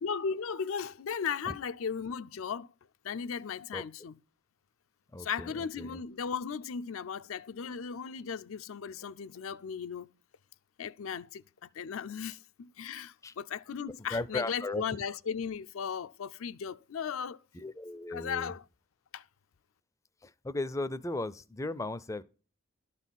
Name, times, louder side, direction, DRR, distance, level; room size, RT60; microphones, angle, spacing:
voice 1, 0.0-2.7 3.0-4.2 5.2-10.1 10.8-17.4 18.1-18.6 19.1-19.2, left 6 dB, 80° left, 0.5 m, -36 dB
voice 2, 5.1-5.5 5.8-6.0 13.2-13.3 14.1-14.8 17.5-18.5 20.2-22.2, left 2 dB, 15° left, 0.4 m, -36 dB
12.0 x 4.1 x 7.2 m
head